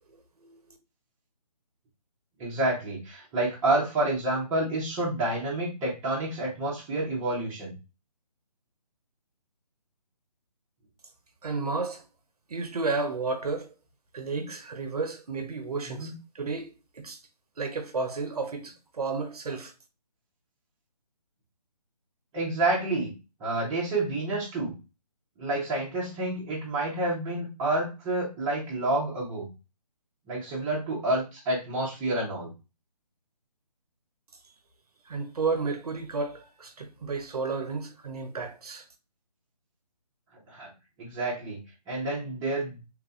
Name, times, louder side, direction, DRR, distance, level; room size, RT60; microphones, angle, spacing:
voice 1, 0.1-0.8 11.4-12.0 12.5-13.7 14.1-17.2 17.6-19.7 35.1-38.8, right 4 dB, 65° right, 0.7 m, -32 dB
voice 2, 2.4-7.8 14.3-14.4 15.9-16.1 22.3-23.1 23.4-24.7 25.4-29.5 30.3-32.5 40.5-40.7 41.0-41.6 41.9-42.8, right 2 dB, 10° right, 0.7 m, -29 dB
3.2 x 2.5 x 2.3 m
figure-of-eight pair, 150°, 21 cm